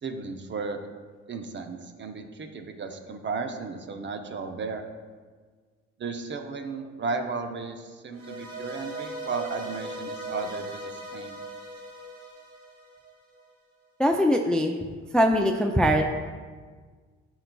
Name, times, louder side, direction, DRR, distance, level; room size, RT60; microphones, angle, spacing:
voice 1, 0.0-0.8 1.3-4.9 6.0-11.4, right 4 dB, 40° right, 6 dB, 0.6 m, -34 dB
sound 1, 8.1-13.4, right 2 dB, 85° right, 1.6 m, -39 dB
voice 2, 14.0-14.8 15.1-16.0, equal, 5° left, 4 dB, 0.3 m, -21 dB
11.0 x 4.0 x 2.2 m, 1.5 s
cardioid pair, 90°, 30 cm